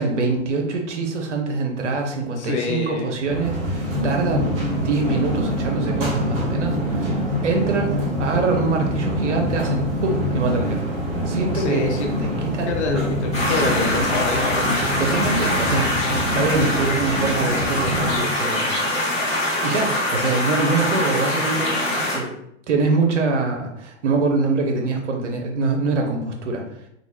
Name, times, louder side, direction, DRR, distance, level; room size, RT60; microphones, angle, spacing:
voice 1, 0.0-10.8 11.3-12.7 15.0-18.7 19.5-21.8 22.1-22.3 22.7-26.6, right 3 dB, 70° right, 2 dB, 0.8 m, -24 dB
voice 2, 2.4-3.1 11.5-12.1 12.7-14.7, left 3 dB, 65° left, 1 dB, 0.6 m, -25 dB
sound 1, 3.3-18.2, equal, 50° right, 1.0 m, -25 dB
sound 2, 13.3-22.2, left 1 dB, 20° left, 1.2 m, -24 dB
2.7 x 2.3 x 3.0 m, 0.78 s
figure-of-eight pair, 100°, 36 cm